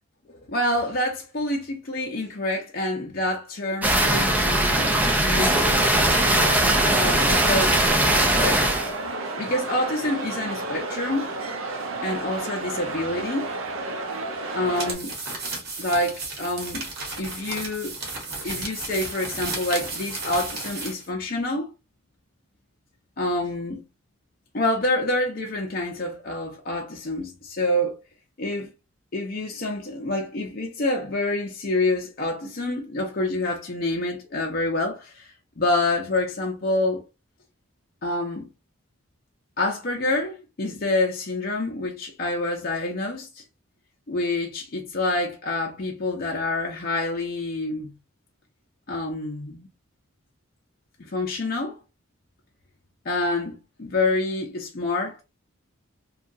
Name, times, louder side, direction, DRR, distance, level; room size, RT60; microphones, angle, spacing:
voice 1, 0.3-5.8 6.8-7.8 8.3-8.7 9.4-11.3 12.0-13.5 14.5-15.1 15.8-16.9 17.2-17.9 18.4-21.7 23.2-23.8 24.5-28.0 28.4-28.7 29.1-35.3 35.6-37.0 38.0-38.5 39.6-43.4 44.1-47.9 48.9-49.7 51.0-51.8 53.1-55.2, left 2 dB, 45° left, 0.5 m, -27 dB
sound 1, 3.8-8.9, right 1 dB, 5° right, 0.3 m, -20 dB
sound 2, 5.5-14.9, right 2 dB, 80° right, 0.6 m, -32 dB
sound 3, 14.7-21.1, right 3 dB, 50° right, 1.1 m, -34 dB
2.8 x 2.3 x 2.5 m
head